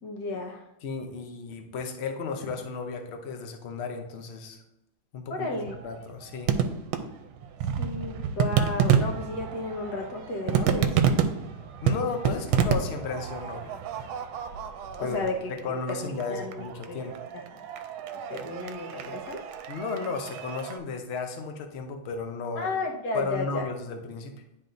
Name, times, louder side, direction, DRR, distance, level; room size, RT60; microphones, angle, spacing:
voice 1, 0.0-0.7 5.3-5.7 7.8-11.0 15.0-17.4 18.3-19.4 22.5-23.7, left 2 dB, 55° left, 0 dB, 1.5 m, -33 dB
voice 2, 0.8-4.6 5.1-6.5 11.8-13.9 15.0-17.2 19.7-22.7 23.1-24.4, left 4 dB, 75° left, 5 dB, 0.6 m, -34 dB
sound 1, 5.7-20.8, right 7 dB, 85° right, 1.4 m, -29 dB
10.5 x 4.1 x 2.6 m, 0.87 s
omnidirectional pair, 2.2 m